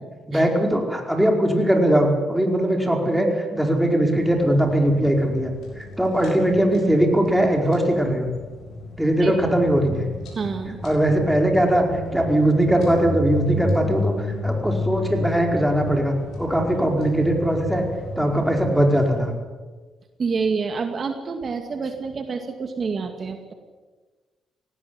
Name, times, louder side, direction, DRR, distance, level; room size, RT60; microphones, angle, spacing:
voice 1, 0.3-5.5 5.8-8.3 9.0-10.1 10.8-11.9 12.1-17.8 18.2-19.3, right 1 dB, ahead, 2 dB, 4.8 m, -20 dB
sound 1, 4.1-19.3, left 1 dB, 80° left, 7.7 m, -32 dB
voice 2, 10.3-10.8 20.2-23.5, right 5 dB, 45° right, 6 dB, 2.2 m, -27 dB
18.0 x 17.5 x 9.6 m, 1.3 s
cardioid pair, 80°, 0 cm